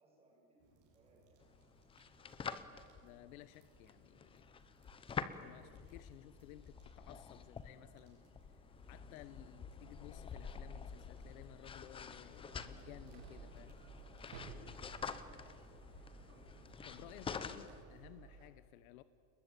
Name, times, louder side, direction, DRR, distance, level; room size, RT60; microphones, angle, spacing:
voice 1, 0.0-1.5 13.9-16.0, right 1 dB, 15° right, -2 dB, 7.9 m, -71 dB
sound 1, 0.6-18.1, right 3 dB, 35° right, 7.5 m, -69 dB
sound 2, 1.4-17.8, left 6 dB, 15° left, 0.7 m, -48 dB
voice 2, 3.0-4.5 5.3-13.8 16.8-19.0, left 15 dB, 80° left, 13 dB, 1.1 m, -57 dB
sound 3, 12.4-18.5, right 5 dB, 85° right, 7.1 m, -56 dB
30.0 x 21.0 x 9.2 m, 2.5 s
supercardioid pair, 165°, 42 cm